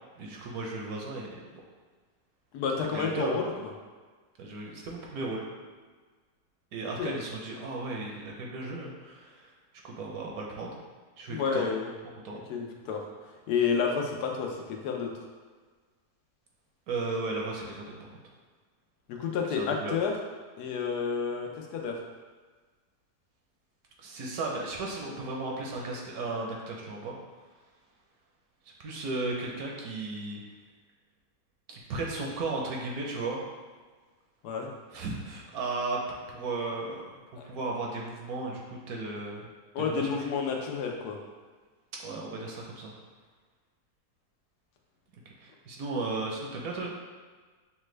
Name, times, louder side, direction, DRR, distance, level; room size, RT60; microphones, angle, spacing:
voice 1, 0.2-1.4 2.9-3.4 4.4-5.4 6.7-9.5 9.8-10.8 11.2-11.7 12.2-12.4 16.9-18.1 19.6-20.0 24.0-27.2 28.8-30.4 31.7-33.4 34.9-36.0 36.3-37.1 37.4-39.5 39.8-40.3 42.0-42.9 45.4-46.9, right 3 dB, 70° right, -1 dB, 1.2 m, -35 dB
voice 2, 2.5-3.7 7.0-7.1 11.3-11.9 12.5-13.0 13.5-15.1 19.1-20.1 20.6-22.0 34.4-34.7 37.4-37.5 39.7-41.2, left 6 dB, 85° left, 1 dB, 1.2 m, -30 dB
5.8 x 2.2 x 3.2 m, 1.4 s
omnidirectional pair, 1.7 m